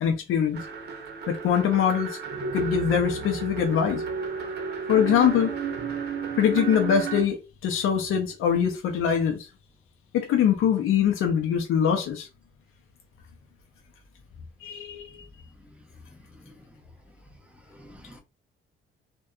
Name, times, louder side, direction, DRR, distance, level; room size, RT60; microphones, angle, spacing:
voice 1, 0.0-0.6 1.3-2.2 2.5-4.0 4.9-5.5 6.3-9.5 10.1-12.3 14.6-15.1, left 8 dB, 80° left, 0.6 m, -23 dB
sound 1, 0.5-7.2, right 5 dB, 55° right, 0.7 m, -32 dB
voice 2, 16.1-16.8 17.7-18.2, equal, 5° right, 0.6 m, -51 dB
2.7 x 2.2 x 2.3 m
cardioid pair, 115°, 21 cm